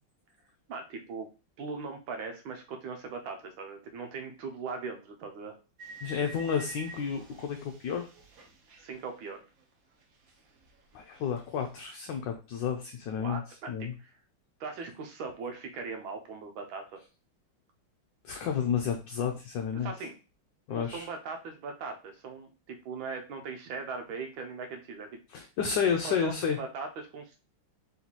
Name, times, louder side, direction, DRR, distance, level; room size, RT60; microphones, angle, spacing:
voice 1, 0.7-1.3 1.6-5.6 8.8-9.4 13.2-14.1 14.6-17.0 19.7-20.2 20.7-25.2 26.0-26.3 26.6-27.4, right 4 dB, 75° right, 5 dB, 1.4 m, -39 dB
sound 1, 5.8-9.7 10.0-11.8, right 3 dB, 55° right, 1.1 m, -50 dB
voice 2, 6.0-8.1 10.9-13.4 13.7-13.9 18.2-19.9 20.7-21.1 25.3-26.6, left 7 dB, 70° left, 3 dB, 1.2 m, -31 dB
3.7 x 3.0 x 4.0 m, 0.31 s
omnidirectional pair, 2.3 m